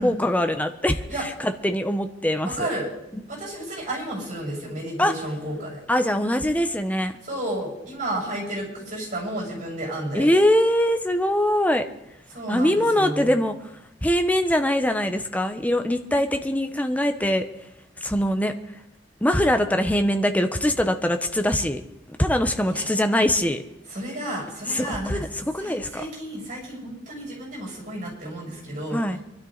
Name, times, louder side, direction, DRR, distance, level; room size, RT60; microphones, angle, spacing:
voice 1, 0.0-2.7 3.1-3.2 5.0-5.1 5.9-7.2 10.1-11.9 12.5-13.7 14.0-17.4 18.0-18.5 19.2-21.8 22.1-23.6 24.7-26.0 28.9-29.2, left 1 dB, 10° left, 7 dB, 0.9 m, -22 dB
voice 2, 2.4-2.9 3.3-5.9 7.2-10.3 12.3-13.3 22.7-22.9 23.9-25.2 25.6-29.0, right 1 dB, 40° right, -3 dB, 7.8 m, -32 dB
23.5 x 12.5 x 4.0 m, 0.87 s
head